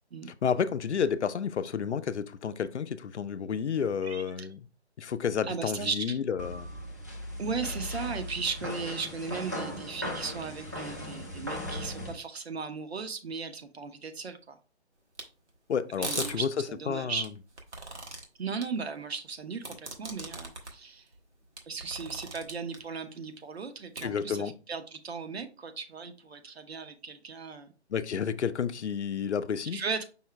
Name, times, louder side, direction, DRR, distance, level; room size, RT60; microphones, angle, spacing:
voice 1, 0.4-4.7 5.0-6.7 15.7-16.5 16.9-17.3 24.0-24.5 27.9-29.8, left 7 dB, 80° left, 0.5 m, -30 dB
voice 2, 4.0-4.5 5.5-6.2 7.4-14.6 16.0-17.3 18.4-21.0 21.7-27.7 29.7-30.0, right 5 dB, 65° right, 0.9 m, -36 dB
sound 1, 6.4-12.1, left 1 dB, 15° right, 0.4 m, -38 dB
sound 2, 15.2-15.3 15.9-16.3 17.2-18.2 18.6-18.7 19.6-20.7 21.1-21.2 21.6-22.8 23.9-24.0, right 2 dB, 85° right, 1.4 m, -38 dB
5.4 x 2.1 x 4.5 m
figure-of-eight pair, 150°, 34 cm